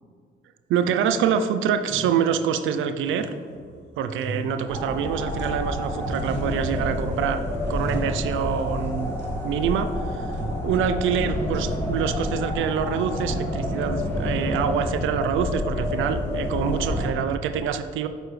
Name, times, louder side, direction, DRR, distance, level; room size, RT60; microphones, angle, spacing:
voice 1, 0.7-3.3 4.0-7.4 7.7-9.1 9.4-10.3 10.6-18.1, right 7 dB, 80° right, 9 dB, 0.5 m, -25 dB
sound 1, 0.9-1.4 1.8-2.7 3.0-5.8 6.0-7.0 7.4-8.7 9.2-9.8 10.3-11.0 11.3-12.4 12.7-13.4 13.9-14.4 15.8-16.3, equal, 60° right, 1.4 m, -39 dB
sound 2, 4.7-17.1, left 1 dB, 10° left, 1.9 m, -28 dB
8.6 x 6.7 x 3.2 m, 2.1 s
cardioid pair, 90°, 20 cm